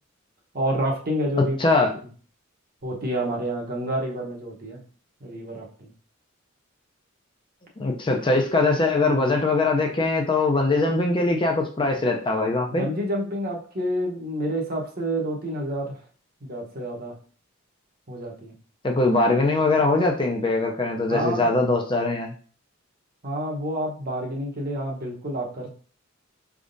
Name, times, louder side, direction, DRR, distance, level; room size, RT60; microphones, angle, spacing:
voice 1, 0.5-1.6 2.8-4.8 5.2-5.9 12.7-15.9 16.4-17.2 18.1-18.5 21.1-21.5 23.2-25.7, right 1 dB, 45° right, 0 dB, 1.0 m, -28 dB
voice 2, 1.6-1.9 7.8-12.9 18.8-22.3, left 3 dB, 25° left, 2 dB, 0.5 m, -22 dB
4.8 x 3.5 x 2.6 m, 0.42 s
head